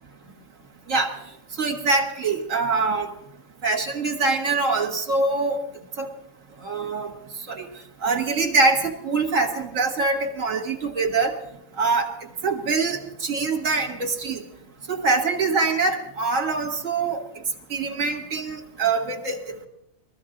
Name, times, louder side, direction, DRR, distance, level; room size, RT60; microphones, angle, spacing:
voice 1, 1.6-3.1 3.6-5.6 6.0-6.1 6.6-7.1 7.5-7.7 8.0-11.4 11.8-12.1 12.4-14.4 14.9-17.2 17.7-19.4, right 3 dB, 65° right, 2 dB, 1.9 m, -24 dB
21.5 x 14.5 x 3.8 m, 0.79 s
omnidirectional pair, 1.4 m